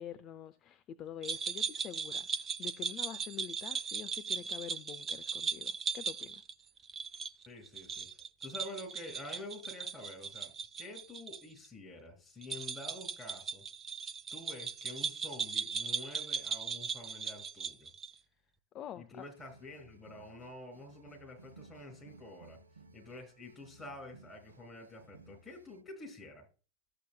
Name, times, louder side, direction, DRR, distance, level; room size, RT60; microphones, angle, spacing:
voice 1, 0.0-6.4 18.7-19.2, left 10 dB, 30° left, 0.5 m, -46 dB
sound 1, 1.2-11.4 11.6-11.7 12.4-18.2, right 6 dB, 20° right, 0.5 m, -38 dB
voice 2, 7.5-8.1 8.4-13.6 14.3-17.9 19.0-22.6 22.9-26.5, left 1 dB, 15° left, 3.7 m, -48 dB
sound 2, 19.1-25.8, right 3 dB, 75° right, 0.8 m, -59 dB
13.0 x 7.8 x 2.3 m
figure-of-eight pair, 90°, 0 cm